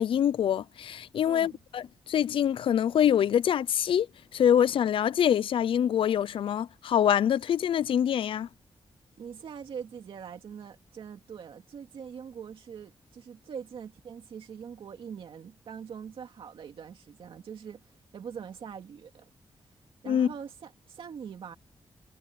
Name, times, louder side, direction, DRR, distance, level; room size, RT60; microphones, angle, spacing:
voice 1, 0.0-4.1 4.3-8.5 20.1-20.3, left 9 dB, 65° left, 0.5 m, -25 dB
voice 2, 1.2-1.6 9.2-19.3 20.0-21.5, right 7 dB, 65° right, 2.4 m, -43 dB
wide cardioid pair, 165°, 10 cm